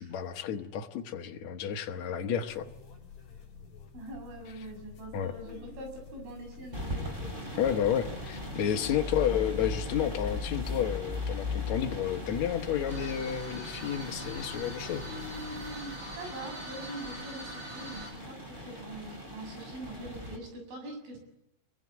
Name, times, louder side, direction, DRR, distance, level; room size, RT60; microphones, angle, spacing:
voice 1, 0.0-2.7 5.1-5.3 7.6-15.0, left 9 dB, 80° left, 4 dB, 1.6 m, -31 dB
sound 1, 2.5-16.0, left 6 dB, 35° left, 5.8 m, -49 dB
voice 2, 3.9-7.3 8.7-9.1 15.1-21.2, right 1 dB, 85° right, 4 dB, 9.3 m, -43 dB
sound 2, 6.7-20.4, left 2 dB, 10° right, 4.8 m, -39 dB
sound 3, 12.9-18.1, right 1 dB, 25° right, 6.7 m, -44 dB
26.0 x 23.5 x 8.4 m, 0.84 s
omnidirectional pair, 5.5 m